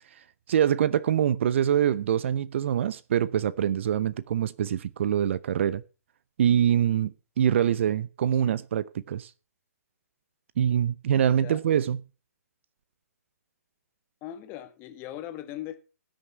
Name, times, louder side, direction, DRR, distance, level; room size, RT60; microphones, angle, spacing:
voice 1, 0.5-5.8 6.4-9.3 10.6-12.0, right 9 dB, 50° right, 0.7 m, -24 dB
voice 2, 14.2-15.8, left 12 dB, 25° left, 1.7 m, -39 dB
18.0 x 6.4 x 5.9 m
figure-of-eight pair, 130°, 9 cm